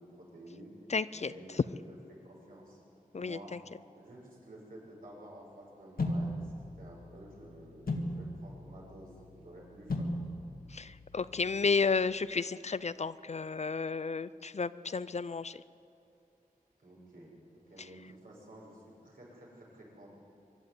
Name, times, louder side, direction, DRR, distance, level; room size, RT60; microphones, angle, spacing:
voice 1, 0.0-0.8 1.1-2.8 3.1-3.6 3.9-10.1 16.8-20.1, right 1 dB, 75° right, -4 dB, 6.3 m, -52 dB
voice 2, 0.9-1.6 3.1-3.6 10.7-15.6, left 4 dB, 50° left, 16 dB, 0.4 m, -32 dB
sound 1, 6.0-12.0, left 1 dB, 80° left, 1.9 m, -38 dB
24.0 x 12.0 x 9.7 m, 2.7 s
wide cardioid pair, 85°, 15 cm